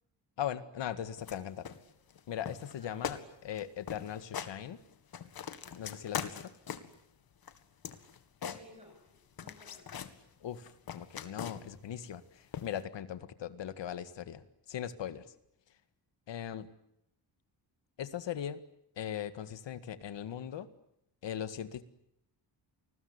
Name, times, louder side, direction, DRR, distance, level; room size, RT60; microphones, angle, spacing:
voice 1, 0.4-1.7 2.3-4.8 5.8-6.5 10.4-12.2 12.6-14.4 14.7-15.2 16.3-16.7 18.0-18.6 19.0-20.7 21.2-21.8, left 10 dB, 75° left, 12 dB, 1.9 m, -39 dB
sound 1, 1.2-1.4 1.6-2.2 2.5-2.8 3.0-3.2 3.5-3.6 3.9-4.5 4.9-7.0 7.4-9.1 9.4-10.2 10.6-11.8 12.5-12.8, left 8 dB, 55° left, 2.1 m, -41 dB
voice 2, 2.8-3.4 8.4-10.0, left 1 dB, 15° right, 2 dB, 7.9 m, -58 dB
29.0 x 20.5 x 9.7 m, 0.78 s
wide cardioid pair, 150°, 43 cm